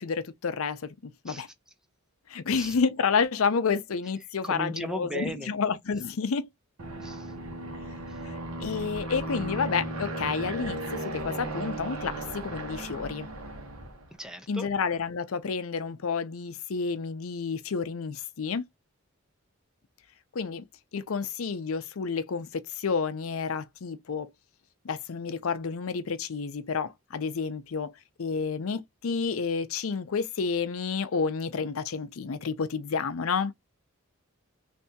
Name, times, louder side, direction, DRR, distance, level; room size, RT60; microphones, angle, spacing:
voice 1, 0.0-1.5 2.3-6.5 8.6-13.3 14.5-18.6 20.3-20.6 20.9-24.3 24.8-27.9 28.2-33.5, left 5 dB, 70° left, 0.5 m, -30 dB
voice 2, 4.4-5.5 7.0-7.3 8.1-8.3 11.0-11.1 14.2-14.7, right 1 dB, 5° right, 0.4 m, -37 dB
Aircraft, 6.8-14.1, right 1 dB, 80° right, 1.1 m, -36 dB
3.3 x 2.7 x 2.7 m
head